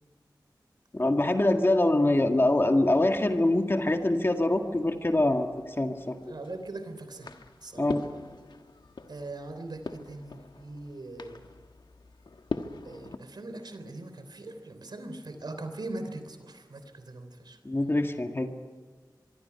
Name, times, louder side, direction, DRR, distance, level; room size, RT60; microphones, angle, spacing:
voice 1, 0.9-5.5 5.8-6.3 7.8-8.0 17.6-18.5, left 1 dB, 30° left, 4 dB, 1.9 m, -24 dB
sound 1, 2.6-13.2, left 3 dB, 80° left, 1.4 m, -43 dB
voice 2, 6.3-7.3 7.6-7.9 9.1-11.4 12.8-17.6, right 2 dB, 70° right, 8 dB, 3.3 m, -41 dB
24.5 x 23.5 x 5.8 m, 1.5 s
wide cardioid pair, 85°, 8 cm